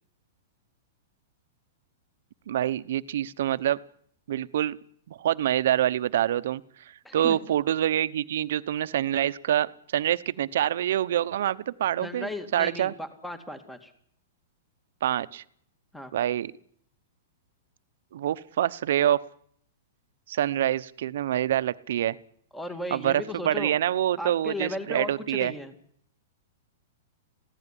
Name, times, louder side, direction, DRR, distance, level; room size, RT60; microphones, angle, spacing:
voice 1, 2.5-3.8 4.3-4.8 5.1-6.6 7.1-12.9 15.0-15.4 16.1-16.5 18.1-19.2 20.3-22.2 22.9-25.5, right 11 dB, 70° right, 14 dB, 0.9 m, -26 dB
voice 2, 7.0-7.4 12.0-13.9 15.9-16.1 22.5-23.7 24.2-25.7, left 1 dB, 5° left, 9 dB, 2.2 m, -36 dB
22.5 x 16.0 x 10.0 m, 0.66 s
hypercardioid pair, 135°, 0 cm